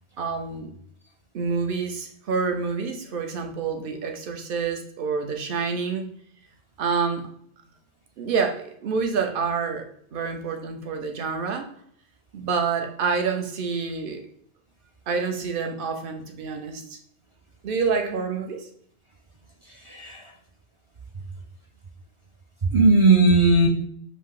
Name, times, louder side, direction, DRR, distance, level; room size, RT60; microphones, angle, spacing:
voice 1, 0.2-0.7 1.3-6.1 6.8-7.3 8.2-11.7 12.3-14.2 15.1-17.0 17.6-18.7, right 5 dB, 55° right, 0.8 m, -27 dB
voice 2, 19.8-20.3 22.6-23.7, right 3 dB, 40° right, 0.5 m, -17 dB
5.1 x 2.7 x 3.7 m
omnidirectional pair, 1.2 m